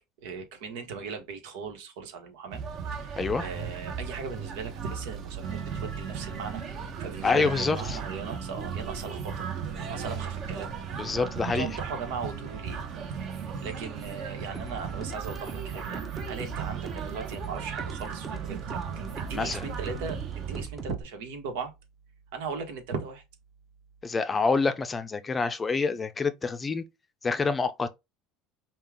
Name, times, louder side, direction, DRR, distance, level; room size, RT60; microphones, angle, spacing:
voice 1, 0.2-2.6 2.9-6.6 7.0-9.5 9.8-10.7 11.0-11.2 11.5-12.8 13.2-18.8 19.2-21.7 22.3-23.2, right 5 dB, 80° right, 1.3 m, -38 dB
sound 1, 2.5-20.6, right 6 dB, 45° right, 1.1 m, -36 dB
voice 2, 7.2-8.0 11.0-11.7 19.3-19.6 24.0-26.8 27.2-27.9, left 4 dB, 20° left, 0.5 m, -27 dB
sound 2, 14.5-21.0, right 6 dB, 20° right, 0.8 m, -40 dB
5.4 x 2.4 x 3.6 m
supercardioid pair, 125°, 0 cm